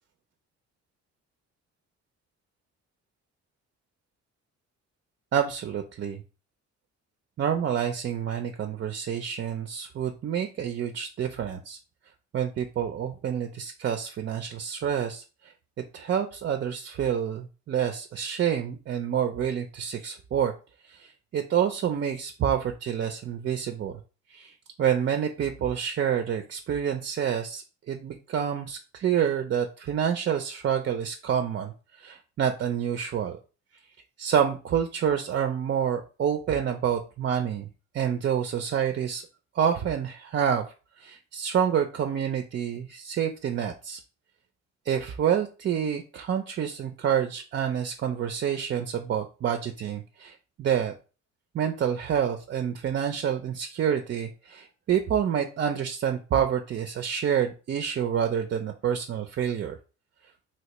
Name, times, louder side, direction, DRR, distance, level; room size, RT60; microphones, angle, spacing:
voice 1, 5.3-6.2 7.4-11.8 12.3-15.2 15.9-20.5 20.9-23.9 24.3-24.5 24.8-31.7 32.0-33.4 34.2-37.7 37.9-39.2 39.5-40.7 41.0-44.0 44.9-50.9 51.5-59.7, right 8 dB, 40° right, 6 dB, 0.4 m, -28 dB
3.2 x 2.8 x 2.9 m, 0.34 s
cardioid pair, 90°, 30 cm